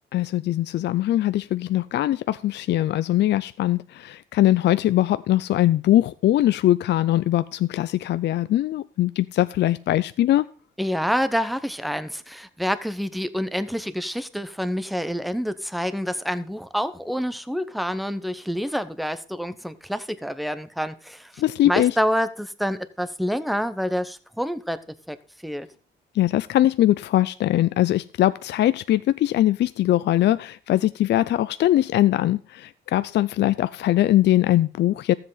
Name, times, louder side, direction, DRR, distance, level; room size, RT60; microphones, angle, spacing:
voice 1, 0.1-10.5 21.4-22.0 26.1-35.1, left 13 dB, 60° left, 0.4 m, -21 dB
voice 2, 10.8-24.8 25.1-25.2 25.4-25.7, equal, ahead, 0.9 m, -27 dB
13.5 x 7.8 x 4.0 m
cardioid pair, 90°, 20 cm